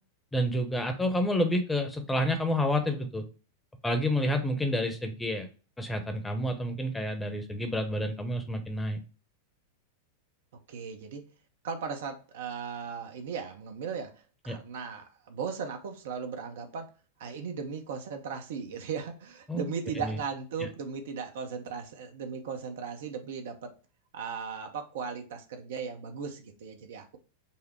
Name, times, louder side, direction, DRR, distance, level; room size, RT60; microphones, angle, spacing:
voice 1, 0.3-3.2 3.8-5.5 5.8-9.0 14.5-14.6 19.5-19.7 20.0-20.2 20.6-20.7, equal, 10° left, 5 dB, 0.9 m, -29 dB
voice 2, 10.7-11.2 11.6-16.9 17.2-23.7 24.1-27.2, right 6 dB, 55° right, 5 dB, 0.6 m, -37 dB
5.5 x 2.1 x 4.3 m, 0.35 s
figure-of-eight pair, 90°, 0 cm